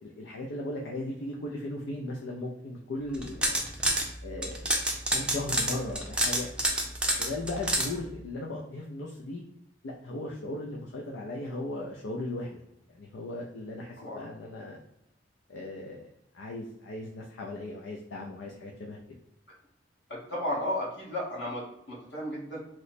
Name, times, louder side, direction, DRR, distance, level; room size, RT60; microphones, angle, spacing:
voice 1, 0.0-3.6 4.2-4.7 5.1-6.5 7.1-9.4 9.8-12.6 12.9-14.8 15.5-16.1 16.3-19.0, left 2 dB, 85° left, -1 dB, 0.4 m, -37 dB
sound 1, 3.1-4.1 4.4-7.9, right 1 dB, 5° right, 0.4 m, -27 dB
voice 2, 20.1-22.6, left 1 dB, 70° left, -5 dB, 1.3 m, -34 dB
3.1 x 2.0 x 4.0 m, 0.81 s
head